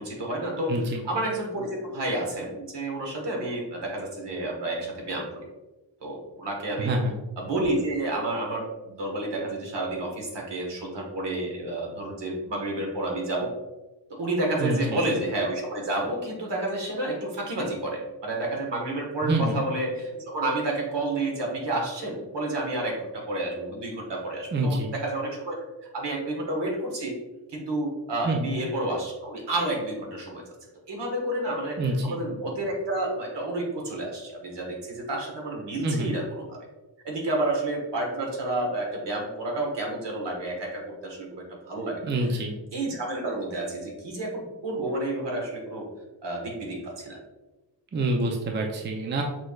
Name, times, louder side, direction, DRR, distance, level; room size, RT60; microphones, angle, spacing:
voice 1, 0.0-5.4 6.0-7.0 7.4-13.5 14.1-25.6 25.9-27.2 27.5-30.4 30.9-36.7 37.0-42.0 42.3-42.4 42.7-45.9 46.2-47.2, right 1 dB, 65° right, 0 dB, 1.3 m, -30 dB
voice 2, 0.7-1.0 6.8-7.1 14.6-15.0 19.2-19.6 24.5-24.9 28.2-28.5 31.8-32.2 35.8-36.1 42.0-42.5 47.9-49.2, right 2 dB, 25° right, 1 dB, 0.5 m, -26 dB
6.1 x 3.2 x 2.3 m, 1.1 s
wide cardioid pair, 120°, 45 cm